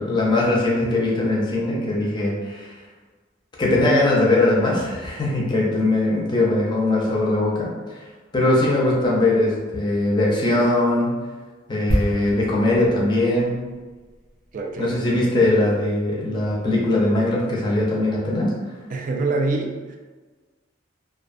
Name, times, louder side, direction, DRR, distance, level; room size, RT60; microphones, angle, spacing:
voice 1, 0.0-2.7 3.6-7.7 8.3-11.2 11.7-13.6 14.8-18.5, left 2 dB, 25° left, -4 dB, 0.5 m, -20 dB
sound 1, 11.9-15.5 15.8-16.0, equal, 80° right, 0.7 m, -30 dB
voice 2, 14.5-15.0 18.9-20.0, right 3 dB, 45° right, 1 dB, 0.3 m, -25 dB
2.4 x 2.2 x 2.5 m, 1.3 s
head